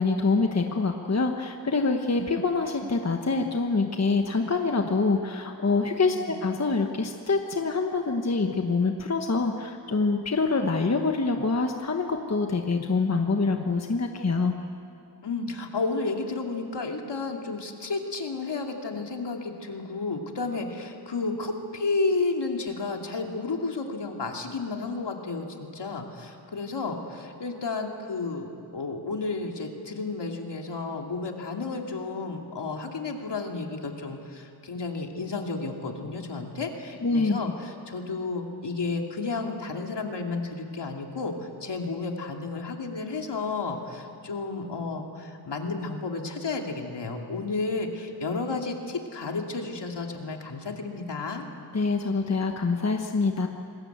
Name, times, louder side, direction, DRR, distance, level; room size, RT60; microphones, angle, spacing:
voice 1, 0.0-14.5 37.0-37.4 51.7-53.5, left 3 dB, 35° left, 4 dB, 1.3 m, -25 dB
voice 2, 15.2-51.4, left 3 dB, 65° left, 2 dB, 2.6 m, -32 dB
27.0 x 20.0 x 8.1 m, 2.6 s
wide cardioid pair, 110°, 45 cm